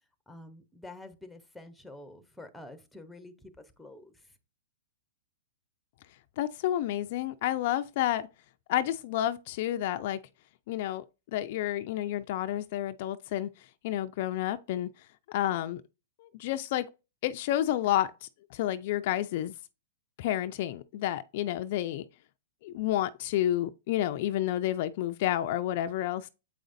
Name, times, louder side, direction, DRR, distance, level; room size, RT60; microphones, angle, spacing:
voice 1, 0.3-3.5 3.8-4.3, left 2 dB, ahead, 0.8 m, -48 dB
voice 2, 6.4-8.3 8.7-10.2 10.7-11.0 11.3-13.5 13.8-14.9 15.3-15.8 16.2-16.9 17.2-19.5 20.2-22.0 22.6-26.3, left 13 dB, 50° left, 0.4 m, -30 dB
7.7 x 5.0 x 2.6 m
hypercardioid pair, 135°, 0 cm